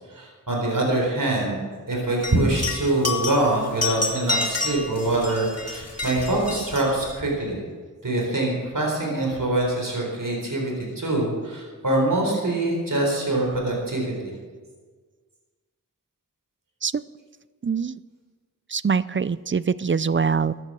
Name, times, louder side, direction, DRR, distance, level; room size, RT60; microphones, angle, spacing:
voice 1, 0.1-1.6 1.9-7.7 8.0-14.3, right 2 dB, 70° right, -1 dB, 4.0 m, -24 dB
sound 1, 2.2-7.2, left 3 dB, 45° left, 2.1 m, -29 dB
voice 2, 17.6-18.0 18.7-20.5, right 5 dB, 35° right, 17 dB, 0.4 m, -23 dB
14.0 x 10.5 x 6.2 m, 1.5 s
wide cardioid pair, 45°, 34 cm